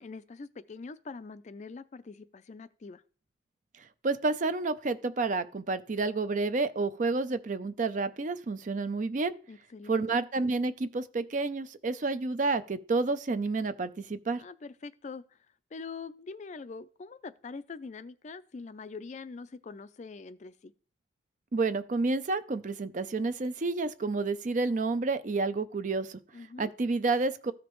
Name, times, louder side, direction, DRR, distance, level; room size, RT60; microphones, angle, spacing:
voice 1, 0.0-3.0 9.5-10.2 14.4-15.4 15.7-20.7 26.3-26.7, left 4 dB, 40° left, 0.4 m, -44 dB
voice 2, 4.0-9.3 9.9-14.4 21.5-26.2 26.6-27.5, right 3 dB, 45° right, 0.5 m, -30 dB
14.0 x 5.0 x 3.1 m
head